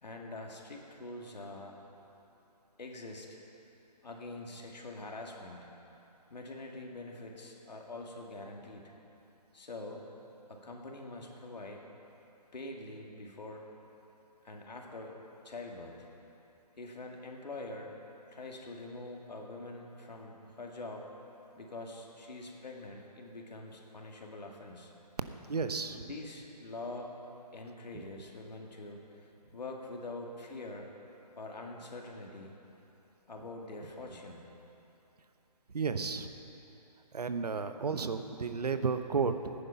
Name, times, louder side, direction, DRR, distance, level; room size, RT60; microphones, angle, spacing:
voice 1, 0.0-1.7 2.8-3.4 4.0-5.7 6.3-8.9 9.5-10.1 10.5-11.9 12.5-13.7 14.4-15.2 15.4-16.1 16.8-18.0 18.3-21.1 21.6-24.9 26.0-27.1 27.5-30.9 31.4-32.6 33.3-34.5, left 2 dB, 80° left, 0 dB, 2.2 m, -44 dB
voice 2, 25.5-26.1 35.7-36.3 37.1-39.5, right 5 dB, 70° right, 9 dB, 0.9 m, -32 dB
14.5 x 10.0 x 5.8 m, 3.0 s
hypercardioid pair, 175°, 21 cm